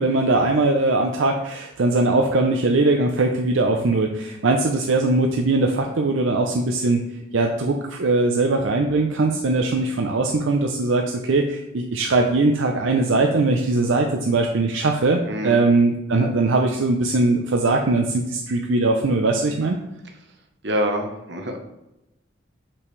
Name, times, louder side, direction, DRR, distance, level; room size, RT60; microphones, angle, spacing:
voice 1, 0.0-7.0 7.3-19.8, right 2 dB, 75° right, 3 dB, 0.6 m, -20 dB
voice 2, 15.2-15.6 20.6-21.6, equal, 60° right, 4 dB, 1.0 m, -25 dB
6.9 x 5.7 x 3.2 m, 0.89 s
head